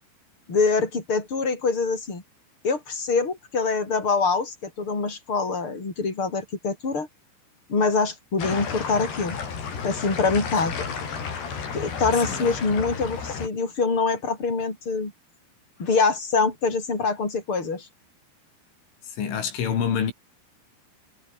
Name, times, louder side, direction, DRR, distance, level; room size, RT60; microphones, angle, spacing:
voice 1, 0.5-2.2 2.6-7.1 7.7-9.4 9.8-10.7 11.7-15.1 15.8-17.9, left 4 dB, 25° left, 7.0 m, -24 dB
sound 1, 8.4-13.5, left 6 dB, 60° left, 7.1 m, -32 dB
voice 2, 19.1-20.1, left 7 dB, 85° left, 6.7 m, -26 dB
omnidirectional pair, 5.4 m